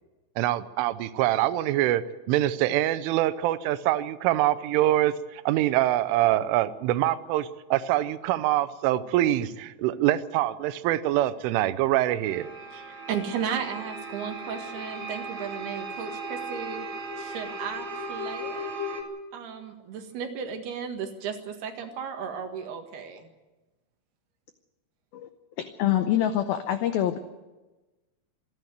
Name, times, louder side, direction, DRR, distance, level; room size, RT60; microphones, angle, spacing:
voice 1, 0.4-12.5, right 14 dB, 90° right, 14 dB, 3.3 m, -24 dB
sound 1, 12.3-19.0, right 1 dB, 35° right, 3.0 m, -36 dB
voice 2, 12.7-16.9 17.2-18.8 19.3-23.3, right 7 dB, 65° right, 5 dB, 3.4 m, -35 dB
voice 3, 25.6-27.2, left 11 dB, 85° left, 8 dB, 2.1 m, -25 dB
26.5 x 11.0 x 9.3 m, 1.1 s
omnidirectional pair, 5.5 m